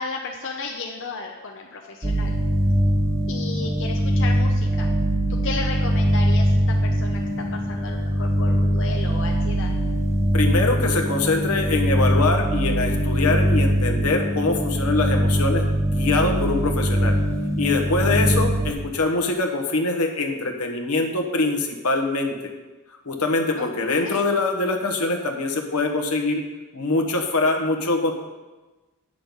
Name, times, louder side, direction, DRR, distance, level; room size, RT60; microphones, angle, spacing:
voice 1, 0.0-2.3 3.3-4.9 5.4-9.7 18.0-18.1 23.6-24.2, left 4 dB, 55° left, 1 dB, 0.7 m, -34 dB
sound 1, 2.0-18.7, equal, 15° right, 0.7 m, -22 dB
voice 2, 10.3-15.6 15.9-17.2 17.6-22.5 23.0-26.4 26.7-28.1, left 3 dB, 85° left, 3 dB, 1.2 m, -23 dB
9.2 x 6.6 x 5.4 m, 1.2 s
head